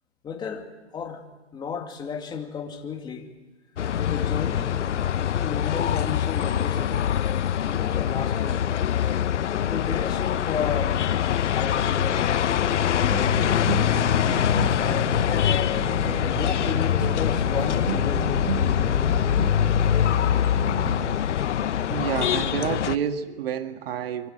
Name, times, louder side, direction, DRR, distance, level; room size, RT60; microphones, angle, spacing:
voice 1, 0.2-0.7 0.9-1.2 1.5-3.3 4.1-4.8 5.3-7.0 7.6-8.9 9.5-11.0 11.4-14.1 14.5-15.1 15.7-15.9 16.4-19.1, left 6 dB, 10° left, 2 dB, 2.5 m, -34 dB
sound 1, 3.8-23.0, left 9 dB, 90° left, 0.9 m, -24 dB
sound 2, 13.1-21.2, right 9 dB, 80° right, 1.7 m, -34 dB
voice 2, 21.9-24.3, right 9 dB, 55° right, 7 dB, 1.9 m, -29 dB
25.5 x 25.5 x 7.9 m, 1.2 s
hypercardioid pair, 155°, 35 cm